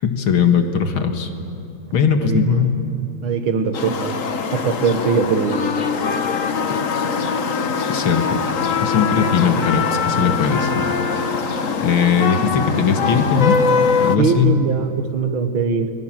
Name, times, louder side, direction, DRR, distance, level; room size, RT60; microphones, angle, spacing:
voice 1, 0.0-1.3 1.9-2.8 7.9-8.4 8.8-10.8 11.8-13.5 14.0-14.6, left 6 dB, 75° left, 5 dB, 2.5 m, -19 dB
voice 2, 3.2-4.2 4.5-5.6 14.2-15.9, right 6 dB, 75° right, 8 dB, 2.2 m, -21 dB
sound 1, 3.7-14.2, left 5 dB, 45° left, 1.3 m, -22 dB
30.0 x 22.5 x 7.6 m, 2.9 s
omnidirectional pair, 2.3 m